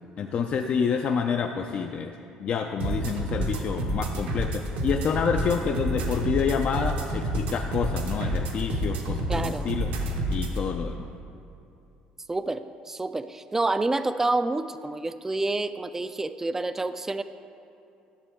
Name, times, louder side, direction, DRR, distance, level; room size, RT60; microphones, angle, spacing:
voice 1, 0.2-2.1 2.4-9.9 10.3-11.0, left 6 dB, 50° left, 4 dB, 0.4 m, -28 dB
sound 1, 2.8-10.6, right 1 dB, 70° right, 1.0 m, -29 dB
voice 2, 9.3-9.7 12.3-17.2, right 2 dB, 15° right, 11 dB, 0.3 m, -28 dB
11.5 x 6.8 x 3.6 m, 2.7 s
supercardioid pair, 80°, 3 cm